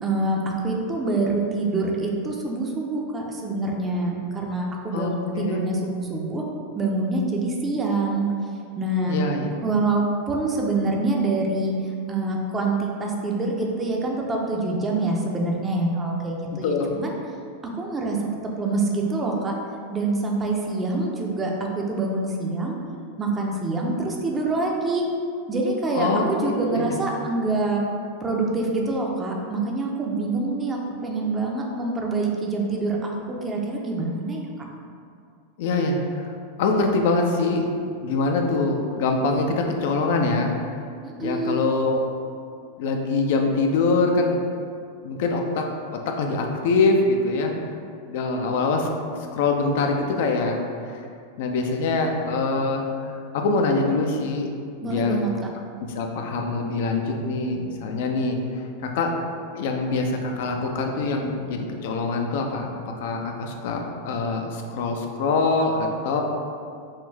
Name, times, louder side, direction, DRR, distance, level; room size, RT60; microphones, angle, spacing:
voice 1, 0.0-6.4 6.7-8.3 8.8-9.2 9.6-17.1 17.7-19.5 19.9-22.8 23.2-25.1 25.5-27.8 28.2-34.5 41.0-41.7 54.8-55.5, right 2 dB, 20° right, -1 dB, 0.6 m, -26 dB
voice 2, 4.9-5.6 9.1-9.5 16.6-16.9 25.9-26.9 35.6-36.3 36.6-37.7 38.0-40.6 41.2-42.0 42.8-44.4 45.0-45.7 45.9-47.5 48.1-48.9 49.3-51.0 51.4-54.5 54.8-55.2 56.0-59.1 59.6-66.2, left 3 dB, 50° left, 3 dB, 0.5 m, -24 dB
5.5 x 2.5 x 3.3 m, 2.4 s
figure-of-eight pair, 90°, 0 cm